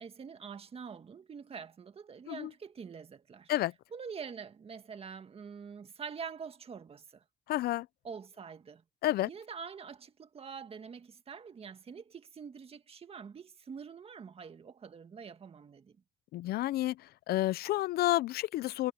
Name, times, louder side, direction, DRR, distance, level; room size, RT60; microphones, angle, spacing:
voice 1, 0.0-3.5 3.9-7.2 8.0-8.8 9.3-16.0, right 6 dB, 35° right, 1.9 m, -45 dB
voice 2, 7.5-7.9 9.0-9.3 16.3-17.0 17.3-18.9, left 15 dB, 65° left, 0.5 m, -30 dB
cardioid pair, 110°, 17 cm